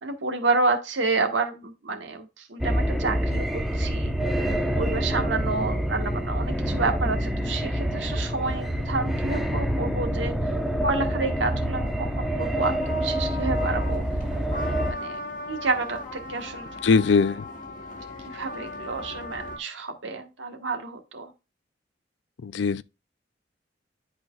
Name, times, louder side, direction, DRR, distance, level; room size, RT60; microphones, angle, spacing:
voice 1, 0.0-4.2 4.7-10.3 10.8-14.0 14.7-15.2 15.5-16.8 18.2-21.3, right 3 dB, 80° right, 1.4 m, -29 dB
sound 1, 2.6-14.9, equal, ahead, 0.9 m, -27 dB
sound 2, 12.8-19.6, left 2 dB, 45° left, 1.9 m, -37 dB
voice 2, 16.8-17.4 22.4-22.8, left 4 dB, 75° left, 0.4 m, -21 dB
10.5 x 4.5 x 2.4 m
head